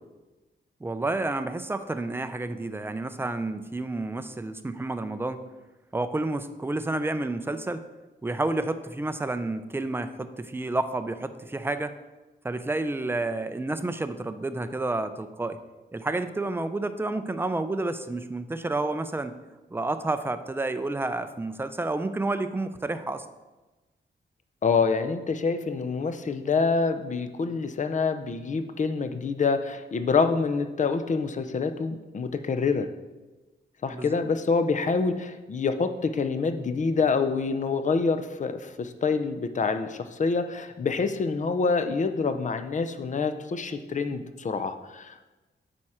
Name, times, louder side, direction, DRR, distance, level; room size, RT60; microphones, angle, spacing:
voice 1, 0.8-5.4 5.9-7.8 8.2-11.9 12.4-15.6 15.9-19.4 19.7-23.3 33.9-34.1, right 2 dB, 10° right, 10 dB, 0.4 m, -30 dB
voice 2, 24.6-32.9 33.8-45.1, left 4 dB, 40° left, 9 dB, 0.5 m, -26 dB
8.9 x 4.3 x 4.8 m, 1.2 s
wide cardioid pair, 105°, 20 cm